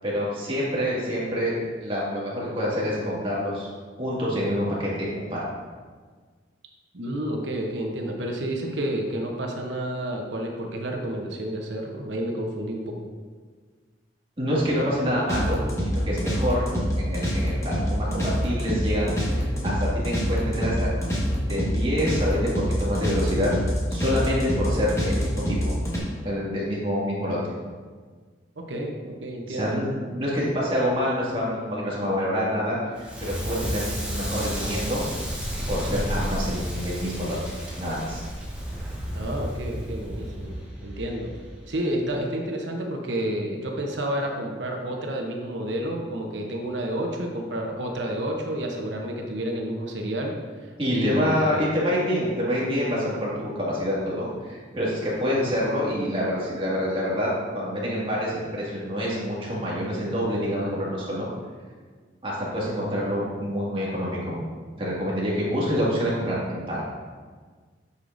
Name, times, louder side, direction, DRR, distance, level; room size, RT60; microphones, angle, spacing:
voice 1, 0.0-3.7 4.0-5.4 14.4-20.9 21.4-23.5 23.9-25.7 26.2-27.5 29.5-35.0 35.7-37.4 37.8-38.2 50.8-61.3 62.2-64.4 64.8-66.8, equal, 30° right, -6 dB, 2.1 m, -27 dB
voice 2, 6.9-12.9 28.6-29.8 39.1-41.3 41.7-50.3 50.6-51.5, right 1 dB, 85° right, 1 dB, 0.9 m, -30 dB
sound 1, 15.3-26.0, equal, 15° left, 1.4 m, -26 dB
Crackle, 33.0-41.9, equal, 5° right, 1.5 m, -32 dB
8.2 x 6.4 x 2.6 m, 1.5 s
head